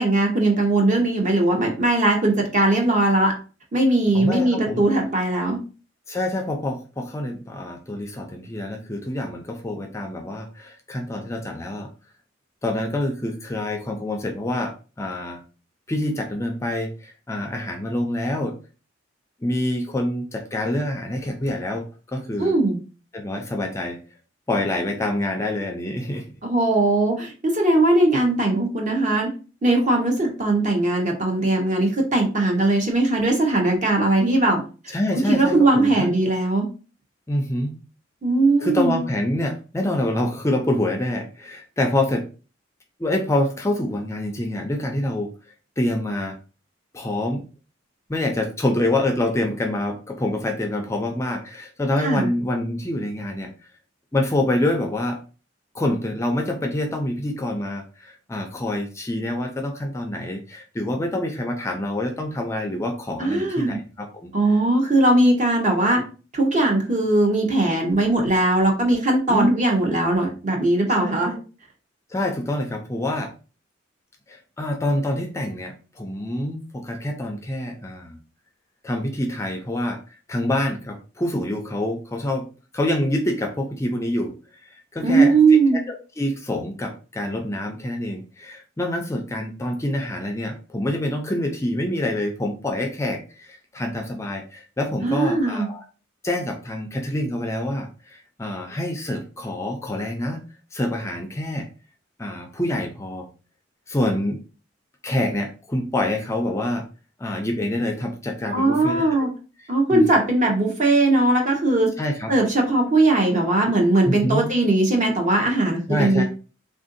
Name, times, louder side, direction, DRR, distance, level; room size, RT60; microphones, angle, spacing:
voice 1, 0.0-3.3 3.7-5.6 22.4-22.8 26.4-29.3 29.6-34.6 35.1-36.7 38.2-39.0 52.0-52.3 63.2-63.8 64.3-66.0 66.3-71.4 85.0-85.8 95.0-95.7 108.5-109.3 109.7-111.9 112.3-116.2, right 2 dB, 40° right, 1 dB, 0.9 m, -19 dB
voice 2, 4.1-4.8 6.1-11.9 12.6-15.4 15.9-18.6 19.4-22.5 23.1-24.0 24.5-26.2 34.9-36.1 37.3-37.7 38.6-42.3 43.0-45.3 45.8-46.4 46.9-47.4 48.1-53.5 54.1-55.2 55.7-64.3 69.3-69.5 71.0-71.1 72.1-73.3 74.3-78.2 78.8-80.0 80.3-82.4 82.7-84.3 84.6-85.6 85.9-95.9 96.2-100.4 100.7-101.7 102.2-103.3 103.9-104.4 105.0-106.8 107.2-109.3 109.9-110.0 112.0-112.3 114.0-114.5 115.9-116.2, left 1 dB, 15° left, 3 dB, 0.4 m, -26 dB
3.5 x 2.6 x 2.5 m, 0.35 s
head